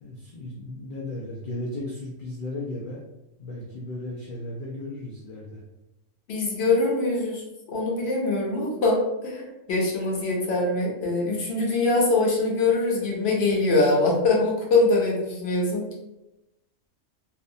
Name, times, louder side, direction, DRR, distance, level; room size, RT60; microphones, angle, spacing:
voice 1, 0.0-3.0 3.4-5.6, left 1 dB, 75° left, -4 dB, 0.4 m, -35 dB
voice 2, 6.3-15.8, left 2 dB, 60° left, -2 dB, 0.9 m, -23 dB
2.7 x 2.1 x 2.5 m, 0.94 s
omnidirectional pair, 1.4 m